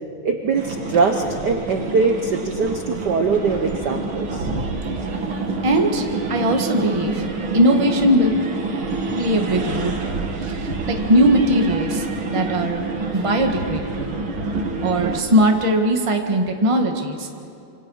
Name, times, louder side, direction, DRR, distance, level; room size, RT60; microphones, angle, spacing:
voice 1, 0.2-4.5, right 4 dB, 70° right, 4 dB, 0.9 m, -22 dB
sound 1, 0.5-15.2, right 3 dB, 45° right, 2.5 m, -27 dB
voice 2, 5.6-7.2 7.5-8.3 9.2-12.8 13.1-14.2 14.8-17.3, equal, 20° right, 3 dB, 0.9 m, -20 dB
26.5 x 25.5 x 5.7 m, 2.6 s
omnidirectional pair, 3.3 m